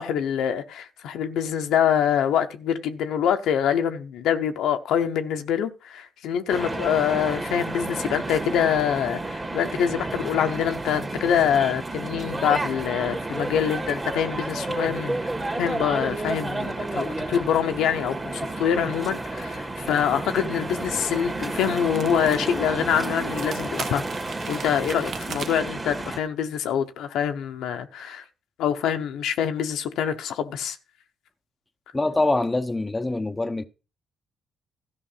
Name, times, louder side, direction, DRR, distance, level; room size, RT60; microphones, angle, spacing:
voice 1, 0.0-15.2 15.6-24.0 24.5-28.2 28.6-30.8, left 8 dB, 85° left, 0.9 m, -25 dB
sound 1, 6.5-26.2, right 2 dB, 25° right, 1.9 m, -31 dB
sound 2, 22.0-22.4 22.7-22.8 23.3-25.7, right 7 dB, 60° right, 0.7 m, -37 dB
voice 2, 31.9-33.7, left 2 dB, 15° left, 0.8 m, -24 dB
13.0 x 5.3 x 5.6 m
cardioid pair, 90°, 0 cm